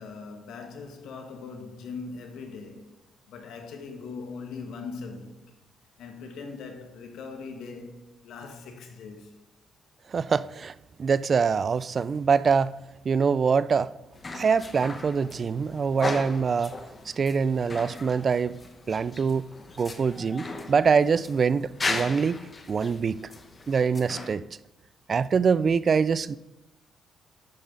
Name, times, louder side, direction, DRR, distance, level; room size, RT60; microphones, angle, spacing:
voice 1, 0.0-2.9 3.3-5.6 6.0-9.4, left 4 dB, 80° left, 1.5 m, -40 dB
voice 2, 10.1-10.7 11.0-12.7 13.1-13.9 14.3-16.7 17.2-18.6 18.9-19.5 19.8-22.4 22.7-23.2 23.7-24.4 25.1-26.4, right 5 dB, 45° right, 0.4 m, -24 dB
sound 1, 14.1-24.4, left 3 dB, 30° left, 1.1 m, -37 dB
10.5 x 6.9 x 3.8 m
cardioid pair, 90°, 0 cm